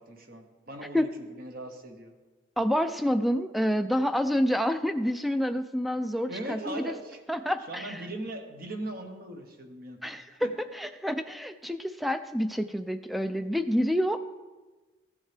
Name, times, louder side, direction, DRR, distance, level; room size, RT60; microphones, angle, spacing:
voice 1, 0.0-2.1 6.3-7.2 7.7-10.5, right 1 dB, 50° right, 4 dB, 1.1 m, -39 dB
voice 2, 2.6-6.9 7.3-8.0 10.0-14.2, equal, ahead, 9 dB, 0.3 m, -28 dB
14.5 x 7.3 x 3.3 m, 1.2 s
head